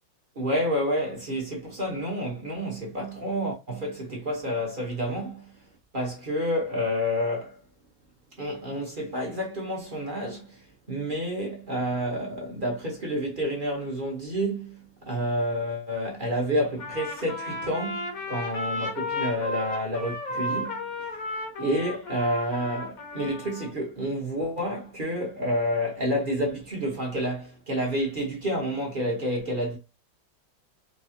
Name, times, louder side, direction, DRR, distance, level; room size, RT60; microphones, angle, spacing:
voice 1, 0.3-5.5 5.9-7.5 8.4-10.6 10.9-14.8 15.0-20.8 21.6-29.8, equal, 30° right, 1.2 m, -29 dB
Trumpet, 16.8-23.7, left 2 dB, 55° left, 1.3 m, -33 dB
4.9 x 2.3 x 2.8 m
omnidirectional pair, 2.0 m